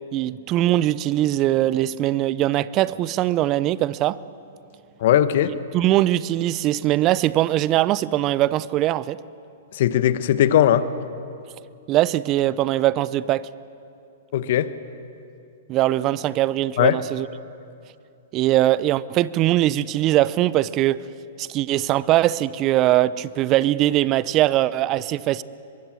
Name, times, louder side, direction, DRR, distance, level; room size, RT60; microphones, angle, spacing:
voice 1, 0.1-4.2 5.7-9.2 11.9-13.5 15.7-17.3 18.3-21.0 21.4-25.4, right 14 dB, 35° right, 19 dB, 0.7 m, -21 dB
voice 2, 5.0-5.5 9.7-10.9 14.3-14.7 16.8-17.0, left 11 dB, 60° left, 13 dB, 1.2 m, -18 dB
23.5 x 22.0 x 7.7 m, 2.6 s
hypercardioid pair, 115°, 0 cm